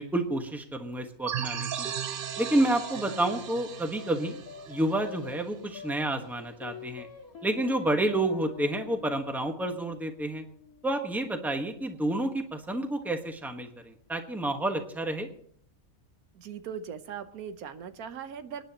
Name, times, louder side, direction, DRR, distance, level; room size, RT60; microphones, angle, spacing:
voice 1, 0.0-1.9 2.4-7.1 7.4-10.4 10.8-15.3, right 1 dB, ahead, 4 dB, 1.1 m, -29 dB
sound 1, 1.3-5.7, right 9 dB, 50° right, 0.7 m, -36 dB
sound 2, 3.7-12.3, left 6 dB, 85° left, 1.9 m, -47 dB
voice 2, 16.3-18.6, right 7 dB, 85° right, 10 dB, 1.4 m, -39 dB
26.0 x 10.0 x 2.9 m, 0.62 s
omnidirectional pair, 1.5 m